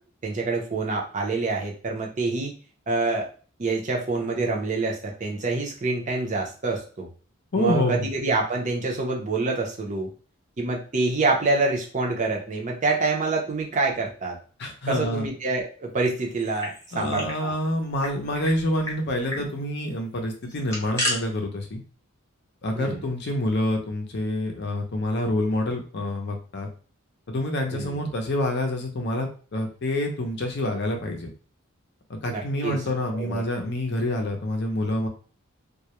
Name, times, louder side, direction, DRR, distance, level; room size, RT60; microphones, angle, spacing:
voice 1, 0.2-2.5 2.9-3.3 3.6-7.1 7.6-10.1 10.6-14.4 14.9-17.5 22.7-23.0 27.7-27.9 32.3-32.8 33.2-33.4, right 3 dB, 35° right, 0 dB, 0.5 m, -26 dB
voice 2, 7.5-8.1 14.6-15.3 16.9-21.8 22.6-26.7 27.3-31.3 32.1-35.1, left 1 dB, 50° left, 3 dB, 0.5 m, -27 dB
sound 1, 16.3-17.4 17.7-17.8 18.0-18.5 18.8-19.0 19.3-19.5 20.4-21.2, left 1 dB, 15° left, 0.7 m, -31 dB
2.3 x 2.0 x 2.9 m, 0.39 s
head